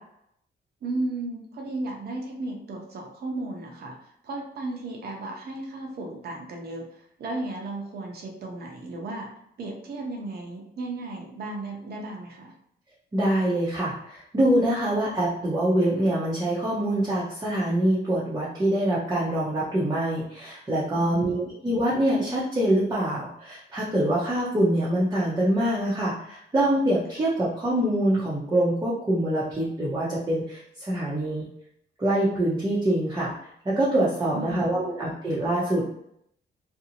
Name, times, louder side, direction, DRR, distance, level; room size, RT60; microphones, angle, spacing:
voice 1, 0.8-3.9 4.2-9.3 9.6-12.5 20.9-21.5 34.3-34.9, right 2 dB, 55° right, 0 dB, 0.7 m, -35 dB
voice 2, 13.1-31.5 32.0-33.3 33.6-35.8, right 1 dB, 20° right, -8 dB, 0.6 m, -25 dB
2.6 x 2.0 x 2.7 m, 0.73 s
cardioid pair, 125°, 19 cm